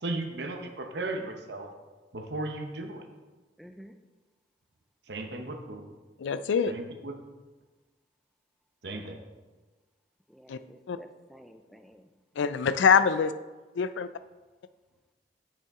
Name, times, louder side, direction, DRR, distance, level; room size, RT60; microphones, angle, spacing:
voice 1, 0.0-1.7 2.1-3.0 5.1-5.9 6.7-7.1 8.8-9.2, right 2 dB, 65° right, 5 dB, 0.9 m, -35 dB
voice 2, 3.6-3.9 10.3-12.1, equal, ahead, 7 dB, 0.3 m, -52 dB
voice 3, 6.2-6.7 10.5-10.6 10.9-11.0 12.4-13.3 13.8-14.1, left 6 dB, 85° left, 13 dB, 0.4 m, -24 dB
8.3 x 5.7 x 3.6 m, 1.3 s
head